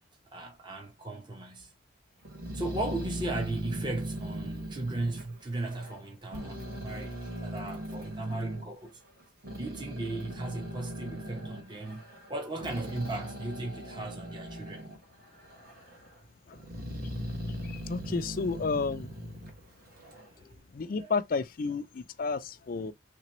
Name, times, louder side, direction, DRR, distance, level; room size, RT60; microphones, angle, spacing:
voice 1, 0.3-1.7 2.5-9.0 9.6-12.0 12.3-14.8 20.3-20.7 21.0-21.1, right 2 dB, 25° right, 0.8 m, -36 dB
Growling, 2.2-6.0 6.3-8.6 9.2-15.0 15.4-16.1 16.5-20.3, equal, 50° right, 1.3 m, -39 dB
voice 2, 17.6-19.1 20.7-22.9, left 4 dB, 45° left, 0.4 m, -32 dB
3.4 x 3.0 x 2.9 m
head